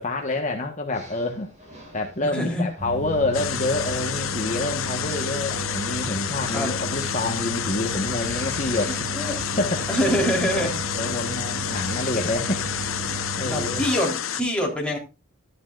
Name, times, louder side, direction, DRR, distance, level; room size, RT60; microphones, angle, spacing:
voice 1, 0.0-1.5 1.9-8.9 9.6-9.9 10.4-12.7 13.4-13.9, left 2 dB, 35° left, 2 dB, 1.3 m, -28 dB
sound 1, 0.9-14.1, equal, 35° right, 7.1 m, -46 dB
voice 2, 2.3-2.7 6.5-6.8 9.1-9.4 9.9-10.7 13.5-15.0, equal, 5° left, -1 dB, 3.7 m, -24 dB
sound 2, 2.8-13.8, right 2 dB, 15° right, 6.3 m, -34 dB
sound 3, 3.3-14.4, left 9 dB, 70° left, 0.9 m, -29 dB
13.0 x 11.0 x 2.5 m, 0.30 s
head